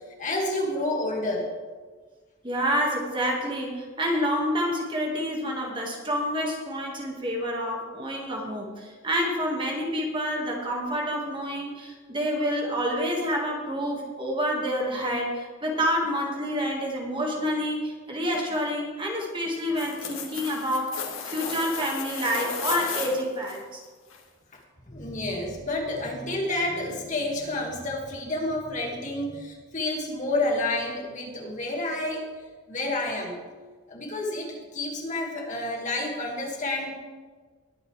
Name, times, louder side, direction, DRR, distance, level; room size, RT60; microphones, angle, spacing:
voice 1, 0.2-1.5 24.9-32.2 32.7-33.4 33.9-37.0, left 2 dB, 35° left, 0 dB, 2.0 m, -29 dB
voice 2, 2.4-23.8, equal, 25° right, 0 dB, 1.7 m, -28 dB
sound 1, 19.5-23.6 24.1-24.2, left 6 dB, 80° left, 2.1 m, -34 dB
20.5 x 8.9 x 3.3 m, 1.5 s
head